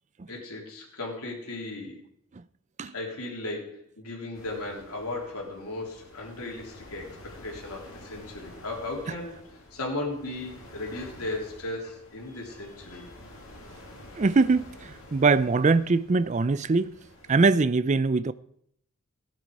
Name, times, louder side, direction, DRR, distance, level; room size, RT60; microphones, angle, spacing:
voice 1, 0.3-2.0 2.9-9.4 9.7-13.1, left 2 dB, 85° left, 3.4 m, -36 dB
sound 1, 4.3-17.3, left 1 dB, 65° left, 2.7 m, -49 dB
voice 2, 14.2-14.7 15.1-17.0 17.3-18.3, right 4 dB, 35° right, 0.4 m, -22 dB
15.0 x 10.5 x 4.8 m
head